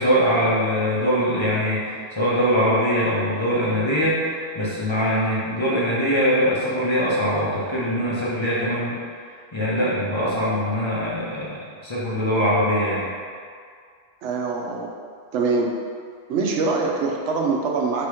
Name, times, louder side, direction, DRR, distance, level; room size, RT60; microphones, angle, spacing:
voice 1, 0.0-9.0 9.5-13.1, equal, 30° left, -8 dB, 0.7 m, -22 dB
voice 2, 14.2-14.9 15.3-15.7 16.3-18.1, right 4 dB, 80° right, 0 dB, 0.9 m, -23 dB
3.4 x 2.9 x 4.7 m, 2.1 s
omnidirectional pair, 1.2 m